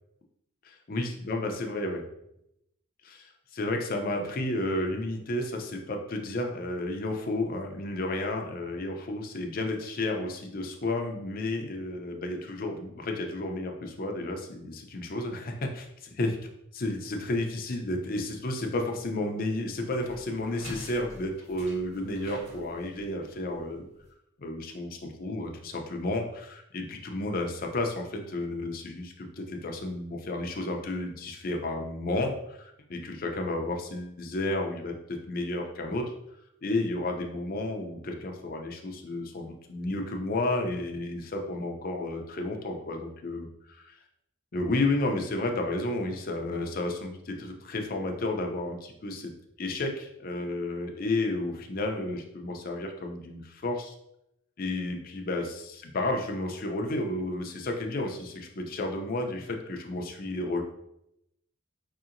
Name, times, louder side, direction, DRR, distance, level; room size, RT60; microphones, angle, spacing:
voice 1, 0.6-2.0 3.0-16.4 16.7-23.8 24.4-36.1 36.6-43.9 44.5-49.3 49.6-53.9 54.6-60.6, left 2 dB, 45° left, 3 dB, 0.5 m, -32 dB
sound 1, 18.7-24.1, right 1 dB, 75° right, 1.4 m, -47 dB
4.8 x 2.8 x 2.5 m, 0.81 s
head